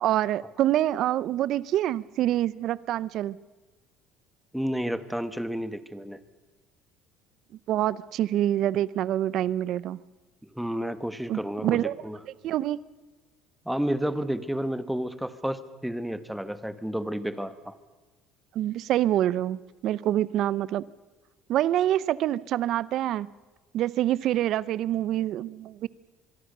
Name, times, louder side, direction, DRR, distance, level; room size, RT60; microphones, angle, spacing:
voice 1, 0.0-3.4 7.7-10.0 11.3-11.9 12.4-12.8 18.5-20.8 21.5-23.3 23.7-25.9, right 12 dB, 60° right, 0.7 m, -26 dB
voice 2, 4.5-6.2 10.5-12.2 13.6-17.7, equal, ahead, 1.3 m, -31 dB
25.0 x 22.0 x 6.7 m
cardioid pair, 135°, 0 cm